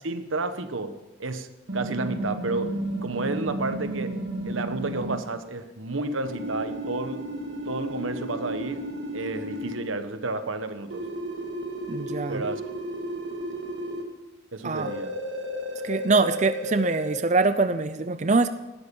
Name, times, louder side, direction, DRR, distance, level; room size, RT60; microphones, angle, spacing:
voice 1, 0.0-4.2 4.4-7.3 7.6-8.9 9.1-11.1 12.3-12.6 14.5-15.2, right 3 dB, 90° right, 10 dB, 1.2 m, -31 dB
sound 1, 1.7-5.2 6.2-9.8 10.9-14.0 14.7-17.1, right 1 dB, 70° right, 2.2 m, -33 dB
voice 2, 11.9-12.4 14.6-14.9 15.8-18.5, right 3 dB, 35° right, 11 dB, 0.5 m, -23 dB
17.5 x 13.0 x 5.4 m, 1.1 s
head